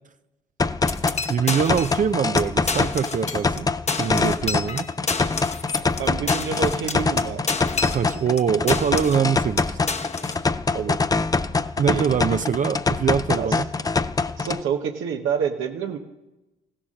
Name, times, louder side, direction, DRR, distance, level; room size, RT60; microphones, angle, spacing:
sound 1, 0.6-14.6, left 4 dB, 20° left, 0.5 m, -24 dB
sound 2, 0.9-2.1 2.4-2.5 2.7-3.6 3.9-8.4 8.7-9.3 9.6-10.4, left 4 dB, 35° left, 1.0 m, -29 dB
voice 1, 1.3-3.7 4.0-4.9 7.9-9.8 11.8-13.7, right 7 dB, 40° right, 10 dB, 0.5 m, -23 dB
voice 2, 6.0-7.4 10.7-11.0 11.8-12.0 13.3-13.6 14.4-16.0, right 7 dB, 85° right, 2 dB, 1.0 m, -27 dB
15.5 x 11.0 x 6.5 m, 1.0 s
cardioid pair, 90°, 20 cm